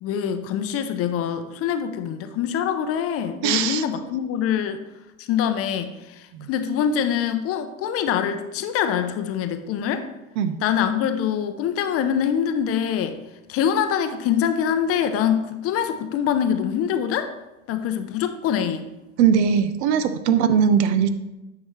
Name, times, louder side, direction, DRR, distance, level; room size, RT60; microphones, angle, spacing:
voice 1, 0.0-4.8 5.2-10.1 10.6-13.2 13.5-17.3 17.7-18.9, left 8 dB, 35° left, 8 dB, 0.7 m, -24 dB
voice 2, 3.4-3.8 6.3-6.5 10.4-10.6 19.2-21.1, right 7 dB, 50° right, 11 dB, 0.7 m, -20 dB
9.3 x 5.7 x 3.2 m, 1.0 s
hypercardioid pair, 95°, 42 cm